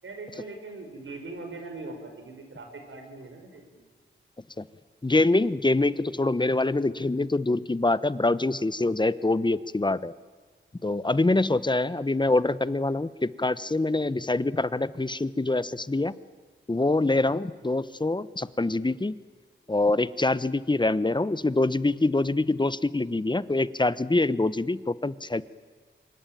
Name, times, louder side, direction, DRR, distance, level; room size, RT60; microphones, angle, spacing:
voice 1, 0.0-3.8, right 3 dB, 80° right, 4 dB, 6.1 m, -41 dB
voice 2, 5.0-10.1 10.8-16.1 16.7-19.2 19.7-25.4, left 2 dB, 20° left, 16 dB, 0.9 m, -25 dB
26.0 x 23.5 x 9.1 m, 1.5 s
cardioid pair, 60°, 20 cm